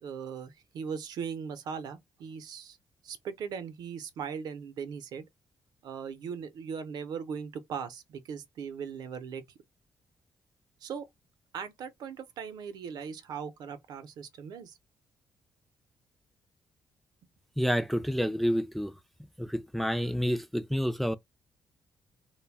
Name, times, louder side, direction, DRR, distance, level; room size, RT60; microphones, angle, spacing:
voice 1, 0.0-2.8 3.0-5.3 5.8-9.4 10.8-11.0 11.5-14.8, right 6 dB, 70° right, 0.6 m, -39 dB
voice 2, 17.6-18.9 19.4-21.2, equal, ahead, 0.4 m, -29 dB
2.2 x 2.2 x 3.3 m
supercardioid pair, 50°, 7 cm